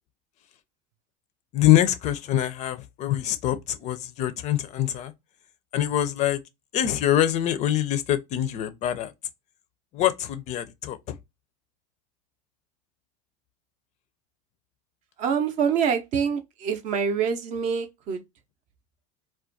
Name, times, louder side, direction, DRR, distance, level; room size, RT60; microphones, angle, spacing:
voice 1, 1.5-5.1 5.7-6.4 6.7-9.1 9.9-11.1, left 12 dB, 45° left, 0.4 m, -24 dB
voice 2, 15.2-18.2, right 7 dB, 45° right, 0.5 m, -25 dB
2.3 x 2.2 x 2.5 m
supercardioid pair, 115°, 17 cm